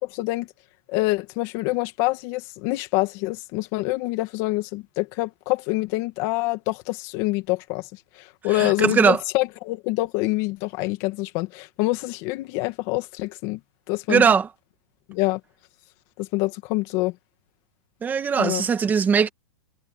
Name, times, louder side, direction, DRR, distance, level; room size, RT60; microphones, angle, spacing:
voice 1, 0.0-0.5 0.9-7.9 8.2-13.6 13.9-14.3 15.1-15.4 16.2-17.1 18.4-18.6, left 20 dB, 35° left, 2.2 m, -26 dB
voice 2, 8.6-9.2 14.1-14.5 18.0-19.3, right 6 dB, 10° right, 1.8 m, -20 dB
supercardioid pair, 170°, 15 cm